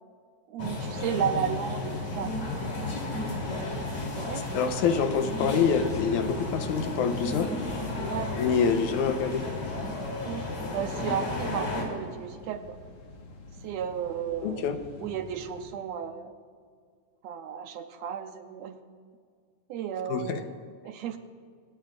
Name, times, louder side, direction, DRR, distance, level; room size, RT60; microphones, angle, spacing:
voice 1, 0.5-2.3 4.2-4.5 8.1-8.4 10.2-12.8 13.6-16.3 17.2-18.8 19.7-20.6 20.8-21.2, right 8 dB, 75° right, 7 dB, 1.8 m, -34 dB
sound 1, 0.6-11.8, left 2 dB, 50° left, 4.3 m, -33 dB
sound 2, 2.1-15.7, left 1 dB, 70° left, 3.2 m, -43 dB
voice 2, 4.5-7.5 8.4-9.4 14.4-14.8 20.1-20.4, left 6 dB, 90° left, 7 dB, 2.4 m, -26 dB
28.5 x 16.5 x 2.5 m, 2.1 s
omnidirectional pair, 3.3 m